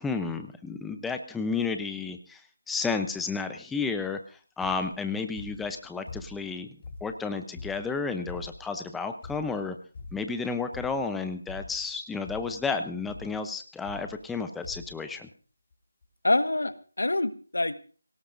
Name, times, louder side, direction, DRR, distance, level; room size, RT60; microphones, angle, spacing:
voice 1, 0.0-2.4 2.7-6.7 7.0-9.8 10.1-15.3, left 4 dB, 5° left, 7 dB, 0.7 m, -32 dB
sound 1, 4.6-5.0 5.4-6.5 6.8-8.8 9.2-9.7 9.9-10.4 10.7-11.1 11.5-12.0 12.3-12.7 13.1-13.4 13.9-14.4 14.6-15.0 15.7-15.8 16.0-16.1, left 3 dB, 35° left, 4.7 m, -44 dB
voice 2, 16.2-17.8, left 2 dB, 85° left, 11 dB, 1.4 m, -26 dB
24.5 x 18.0 x 2.6 m, 0.40 s
figure-of-eight pair, 170°, 0 cm